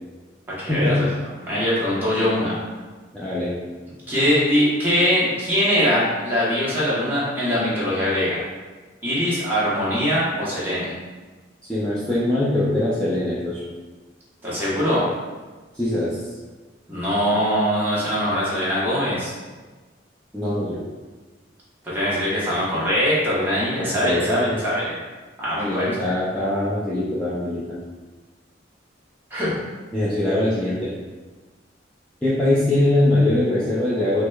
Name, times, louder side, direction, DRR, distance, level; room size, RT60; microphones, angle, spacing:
voice 1, 0.6-1.1 1.4-2.6 4.1-8.4 9.0-10.9 14.4-15.0 16.9-19.3 21.8-24.9 25.4-25.9 29.3-29.5, equal, 10° right, -9 dB, 0.9 m, -22 dB
voice 2, 3.1-3.5 11.6-13.6 15.7-16.2 20.3-20.8 23.8-24.6 25.6-27.8 29.9-30.9 32.2-34.3, left 1 dB, 5° left, -10 dB, 0.4 m, -22 dB
4.7 x 2.1 x 2.3 m, 1.3 s
head